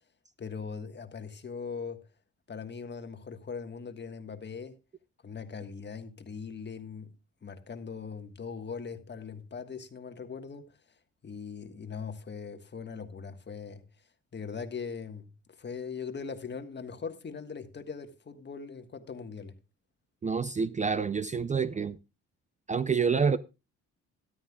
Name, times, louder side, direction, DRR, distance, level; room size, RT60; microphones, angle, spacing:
voice 1, 0.4-2.0 2.5-4.8 5.2-7.1 7.4-10.7 11.2-13.8 14.3-15.3 15.6-19.5, left 5 dB, 35° left, 1.5 m, -40 dB
voice 2, 20.2-22.0 22.7-23.4, right 5 dB, 25° right, 0.5 m, -27 dB
13.5 x 12.5 x 2.3 m
cardioid pair, 90°, 30 cm